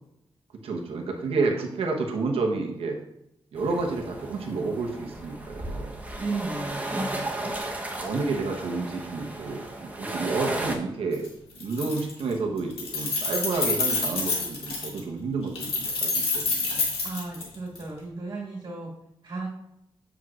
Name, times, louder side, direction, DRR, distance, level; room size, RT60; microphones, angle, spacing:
voice 1, 0.6-3.0 3.5-5.9 6.9-7.0 7.6-11.3 11.6-16.9, right 3 dB, 90° right, 1 dB, 1.1 m, -30 dB
sound 1, 3.6-10.8, right 1 dB, 15° right, 1.0 m, -34 dB
voice 2, 6.2-7.3 17.0-18.9 19.2-19.5, right 3 dB, 50° right, -4 dB, 1.9 m, -34 dB
Keys jangling, 11.1-11.3 11.6-12.3 12.6-15.0 15.5-17.8, left 3 dB, 90° left, 1.8 m, -28 dB
7.8 x 6.1 x 2.4 m, 0.84 s
cardioid pair, 100°, 10 cm